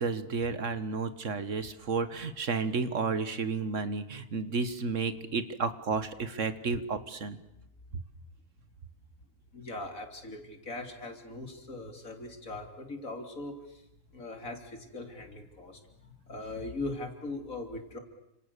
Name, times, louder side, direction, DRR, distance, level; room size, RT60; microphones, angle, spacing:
voice 1, 0.0-7.4, right 4 dB, 70° right, 12 dB, 1.8 m, -32 dB
voice 2, 9.5-13.9 14.1-18.0, left 2 dB, 85° left, 5 dB, 3.6 m, -40 dB
29.5 x 26.5 x 6.9 m, 0.83 s
omnidirectional pair, 1.4 m